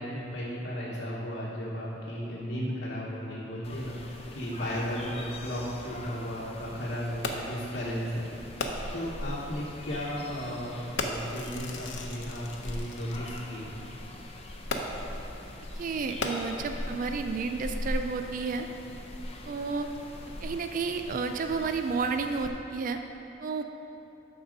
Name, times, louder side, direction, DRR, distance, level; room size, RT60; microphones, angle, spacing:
voice 1, 0.0-13.7, equal, 50° left, -7 dB, 1.2 m, -35 dB
sound 1, 3.6-22.5, left 1 dB, 30° left, 0.7 m, -41 dB
Fireworks, 7.2-7.7 8.6-9.1 10.0-10.1 11.0-13.4 14.7-15.2 16.0-16.9 17.6-17.7, left 2 dB, 65° left, 0.8 m, -35 dB
voice 2, 15.8-18.7 19.5-19.9 20.4-23.0 23.4-23.6, right 4 dB, 45° right, 6 dB, 0.4 m, -31 dB
12.5 x 4.4 x 5.2 m, 3.0 s
head